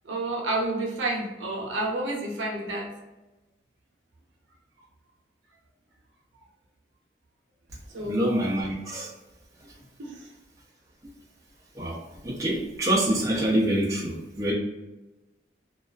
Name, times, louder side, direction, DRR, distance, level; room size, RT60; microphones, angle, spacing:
voice 1, 0.0-2.9 7.9-8.3 10.0-10.3, right 2 dB, 85° right, -1 dB, 0.6 m, -30 dB
voice 2, 8.0-9.1 11.7-14.5, right 1 dB, 20° right, -5 dB, 0.5 m, -26 dB
2.3 x 2.3 x 2.3 m, 1.0 s
head